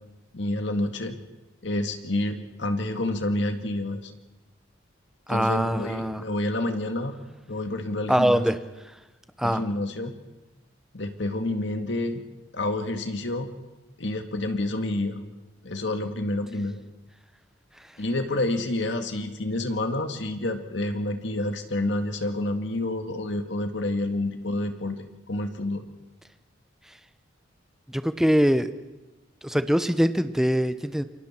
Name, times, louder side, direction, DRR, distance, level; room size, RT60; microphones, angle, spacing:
voice 1, 0.3-1.2 1.6-4.1 5.3-7.1 7.5-8.4 9.4-10.1 10.9-12.2 12.5-13.5 14.0-15.2 15.6-16.8 18.0-25.8, left 1 dB, 65° left, 6 dB, 2.0 m, -28 dB
voice 2, 5.3-6.2 8.1-8.6 9.4-9.6 27.9-28.7 29.4-31.0, equal, ahead, 11 dB, 0.8 m, -23 dB
28.0 x 24.0 x 4.5 m, 1.0 s
head